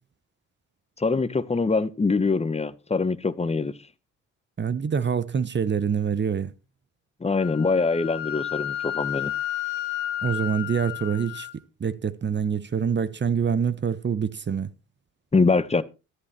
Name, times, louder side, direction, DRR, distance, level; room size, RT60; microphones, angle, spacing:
voice 1, 1.0-3.7 7.2-9.3 15.3-15.8, left 4 dB, 15° left, 1.3 m, -23 dB
voice 2, 4.6-6.5 10.2-11.5 11.8-14.7, right 7 dB, 30° right, 1.0 m, -25 dB
Wind instrument woodwind instrument, 7.4-11.5, left 12 dB, 85° left, 1.8 m, -31 dB
13.5 x 11.5 x 4.4 m
hypercardioid pair, 60°, 37 cm